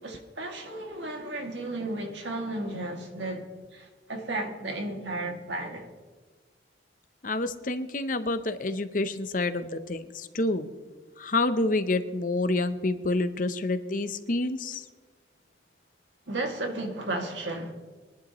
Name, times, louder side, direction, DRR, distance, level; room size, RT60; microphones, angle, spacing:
voice 1, 0.0-5.9 16.3-17.7, right 2 dB, 85° right, 2.3 m, -34 dB
voice 2, 7.2-10.7 11.2-14.8, left 2 dB, 45° left, 0.7 m, -28 dB
22.5 x 11.0 x 3.1 m
head